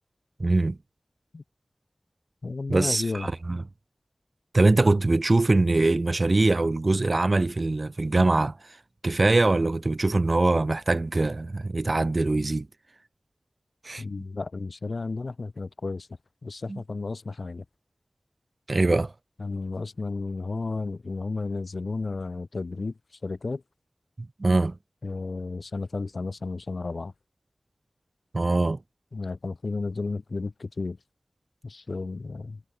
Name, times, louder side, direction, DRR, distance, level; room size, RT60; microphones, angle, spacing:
voice 1, 0.4-0.8 2.7-3.6 4.5-8.5 9.0-12.7 13.8-14.2 16.7-16.8 18.7-19.1 24.2-24.8 28.3-28.8, right 2 dB, 50° right, 0.5 m, -23 dB
voice 2, 2.4-3.3 14.0-16.1 16.4-17.7 19.4-22.9 23.2-23.6 25.0-27.1 29.1-31.0 31.6-32.6, left 3 dB, 70° left, 2.0 m, -32 dB
wide cardioid pair, 60°, 0 cm